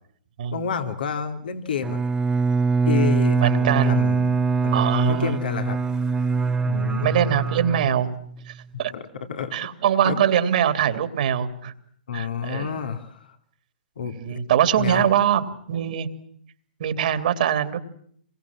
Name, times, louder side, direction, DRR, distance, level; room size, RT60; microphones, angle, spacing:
voice 1, 0.5-2.0 2.8-4.4 4.6-4.8 5.1-5.8 6.7-7.2 8.9-9.7 10.0-10.2 12.1-13.3 14.0-14.4 14.8-15.1, left 7 dB, 75° left, 7 dB, 3.0 m, -29 dB
Bowed string instrument, 1.8-8.4, right 4 dB, 15° right, 1.1 m, -23 dB
voice 2, 3.4-4.1 4.7-5.4 7.0-8.1 8.5-8.9 9.5-11.7 12.1-12.8 14.0-16.1 16.8-17.8, right 9 dB, 60° right, 10 dB, 3.0 m, -23 dB
27.5 x 23.0 x 7.4 m, 0.63 s
hypercardioid pair, 125°, 5 cm